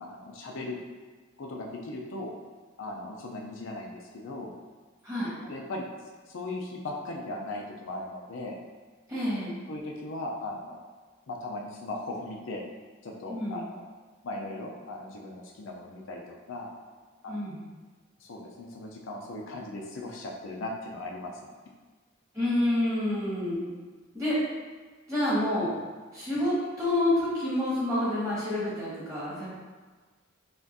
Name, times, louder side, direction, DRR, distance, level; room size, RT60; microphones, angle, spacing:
voice 1, 0.0-0.8 1.4-2.3 2.8-4.5 5.4-5.9 6.3-8.6 9.7-10.8 11.3-12.6 13.0-13.6 14.2-16.7 17.2-17.4 18.2-21.3, left 2 dB, 70° left, -1 dB, 0.5 m, -38 dB
voice 2, 9.1-9.6 13.3-13.6 17.3-17.6 22.3-23.7 24.1-24.4 25.1-25.7 26.1-29.5, left 1 dB, 15° right, -9 dB, 1.4 m, -28 dB
5.7 x 2.5 x 2.6 m, 1.4 s
head